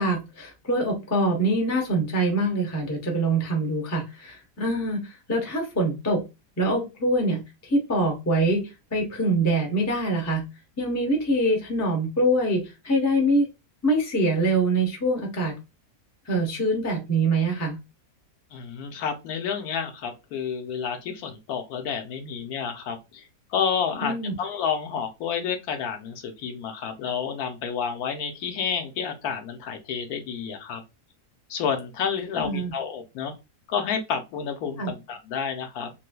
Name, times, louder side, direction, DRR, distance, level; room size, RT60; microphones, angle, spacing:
voice 1, 0.0-6.2 6.6-10.4 10.8-13.5 13.8-15.5 16.3-17.8 24.0-24.3 32.4-32.7 34.8-34.9, right 1 dB, 15° left, 0.5 m, -24 dB
voice 2, 18.5-23.2 23.5-30.8 31.5-33.3 33.7-35.9, left 7 dB, 75° left, 1.1 m, -30 dB
3.2 x 3.1 x 2.2 m
omnidirectional pair, 1.7 m